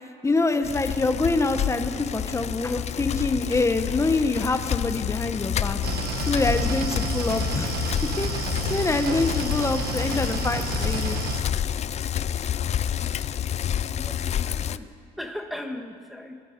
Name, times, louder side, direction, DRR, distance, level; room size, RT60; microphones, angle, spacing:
voice 1, 0.2-5.8 6.3-7.7 8.2-8.3 8.7-11.2, left 3 dB, 15° left, 8 dB, 1.1 m, -25 dB
Bicycle, 0.6-14.8, left 10 dB, 40° left, 0.5 m, -29 dB
sound 1, 5.8-11.4, right 7 dB, 70° right, 1.3 m, -31 dB
voice 2, 14.0-14.8 15.2-16.3, left 1 dB, ahead, 3 dB, 1.6 m, -37 dB
22.5 x 12.0 x 5.3 m, 2.3 s
cardioid pair, 110°, 17 cm